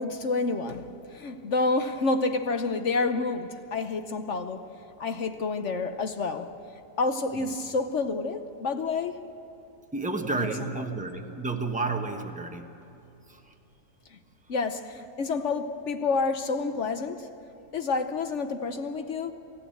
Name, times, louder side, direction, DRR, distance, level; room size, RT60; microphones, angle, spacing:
voice 1, 0.0-4.7 5.0-6.5 7.0-9.3 10.4-10.5 14.5-17.3 17.7-19.3, left 3 dB, 55° left, 1.0 m, -29 dB
voice 2, 9.9-12.7 13.3-13.5, right 3 dB, 5° right, 1.0 m, -31 dB
27.5 x 15.0 x 7.8 m
omnidirectional pair, 1.8 m